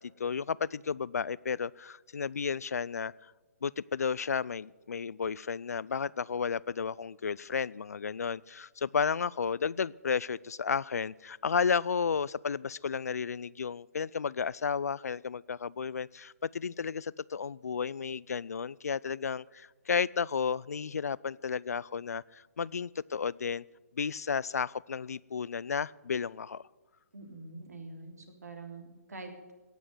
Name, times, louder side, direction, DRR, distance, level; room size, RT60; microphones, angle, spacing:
voice 1, 0.2-3.1 3.6-23.6 24.0-26.6, left 6 dB, 85° left, 22 dB, 0.4 m, -33 dB
voice 2, 27.1-29.5, right 3 dB, 90° right, 4 dB, 3.3 m, -45 dB
17.5 x 6.4 x 9.1 m, 1.2 s
hypercardioid pair, 150°, 8 cm